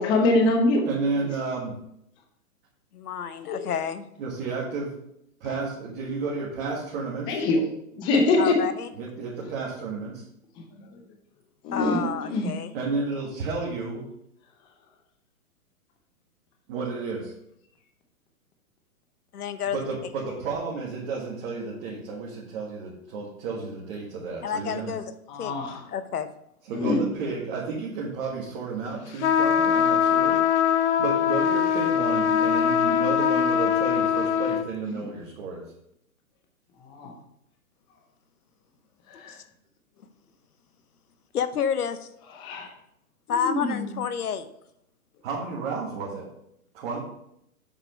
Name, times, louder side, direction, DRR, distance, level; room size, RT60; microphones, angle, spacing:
voice 1, 0.0-0.9 3.5-3.6 7.3-7.6 8.0-8.6 11.6-12.5 25.3-25.8 26.7-27.0 34.9-35.0 36.9-37.1 39.2-39.3 42.4-42.7 43.3-43.9, left 2 dB, 10° left, 3 dB, 0.5 m, -24 dB
voice 2, 0.8-1.8 4.2-4.9 5.4-7.4 9.0-10.2 12.7-14.0 16.7-17.3 19.7-24.9 26.7-30.4 30.7-35.6 45.2-46.3 46.7-47.0, right 4 dB, 40° right, -4 dB, 1.7 m, -32 dB
voice 3, 2.9-4.0 8.4-8.9 11.7-12.7 19.3-19.8 24.4-25.1 25.4-25.5 25.9-26.3 39.3-39.4 41.3-42.1 43.3-44.5, left 7 dB, 80° left, 12 dB, 1.0 m, -29 dB
sound 1, 29.2-34.7, left 8 dB, 50° left, 0.7 m, -22 dB
7.4 x 4.9 x 5.2 m, 0.76 s
hypercardioid pair, 145°, 44 cm